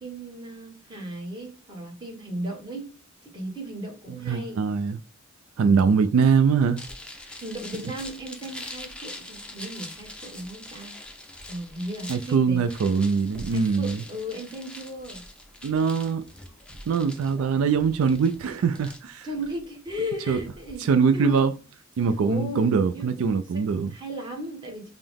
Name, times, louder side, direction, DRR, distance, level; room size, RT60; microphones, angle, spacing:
voice 1, 0.0-2.9 3.2-4.6 5.6-5.9 7.4-11.0 11.5-12.7 13.5-15.2 19.2-21.5 22.2-23.2 23.5-24.9, equal, 20° right, 1.1 m, -36 dB
voice 2, 4.3-5.0 5.6-6.8 12.1-14.0 15.6-16.2 16.9-19.3 20.3-20.4 20.8-21.5 22.0-23.9, right 5 dB, 75° right, 0.3 m, -22 dB
sound 1, 6.8-20.7, left 1 dB, 5° left, 0.5 m, -43 dB
5.5 x 2.0 x 3.4 m
head